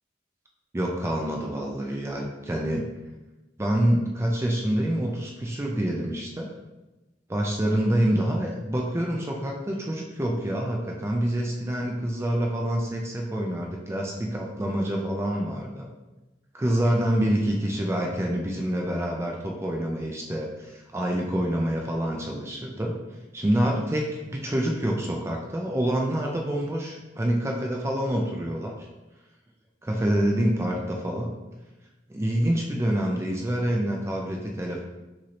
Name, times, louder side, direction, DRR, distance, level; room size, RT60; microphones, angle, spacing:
voice 1, 0.7-2.9 3.6-6.5 7.3-15.9 16.5-22.9 23.3-28.7 29.8-31.3 32.1-34.8, right 1 dB, 15° right, 0 dB, 0.4 m, -27 dB
6.1 x 2.7 x 2.9 m, 1.1 s
head